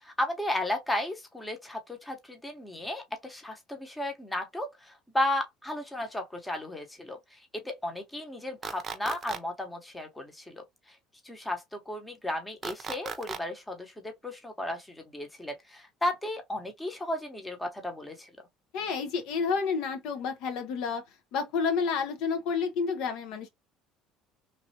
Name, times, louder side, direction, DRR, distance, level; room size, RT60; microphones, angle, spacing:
voice 1, 0.0-10.6 11.2-18.3, left 1 dB, 10° left, 1.0 m, -34 dB
sound 1, 8.6-9.4 12.6-13.4, right 6 dB, 40° right, 0.6 m, -36 dB
voice 2, 18.7-21.0 21.3-23.5, left 5 dB, 70° left, 0.8 m, -30 dB
3.2 x 2.4 x 2.8 m
supercardioid pair, 100°, 0 cm